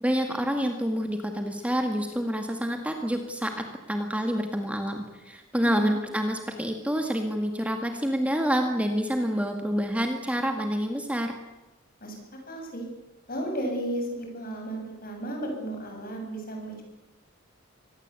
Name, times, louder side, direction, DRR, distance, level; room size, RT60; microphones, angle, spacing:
voice 1, 0.0-11.4, equal, 5° right, 4 dB, 1.9 m, -28 dB
voice 2, 5.6-6.0 12.0-12.1 12.5-12.8 13.3-16.8, right 1 dB, 45° left, 2 dB, 7.8 m, -34 dB
25.0 x 19.0 x 8.4 m, 1.0 s
head